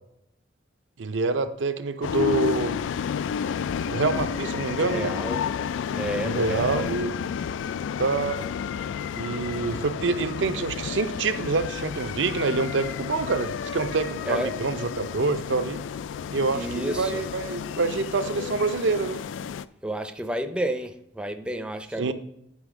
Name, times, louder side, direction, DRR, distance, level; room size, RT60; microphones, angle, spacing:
voice 1, 1.0-2.7 3.9-5.1 6.2-7.1 8.0-8.4 9.1-15.8 16.3-19.2 22.0-22.1, right 3 dB, 80° right, 10 dB, 0.6 m, -26 dB
sound 1, 2.0-19.7, left 7 dB, 90° left, 0.3 m, -31 dB
voice 2, 4.8-5.4 5.9-6.9 14.2-14.5 16.5-17.2 19.8-22.1, right 1 dB, 5° right, 6 dB, 0.5 m, -31 dB
9.8 x 3.5 x 4.9 m, 0.79 s
head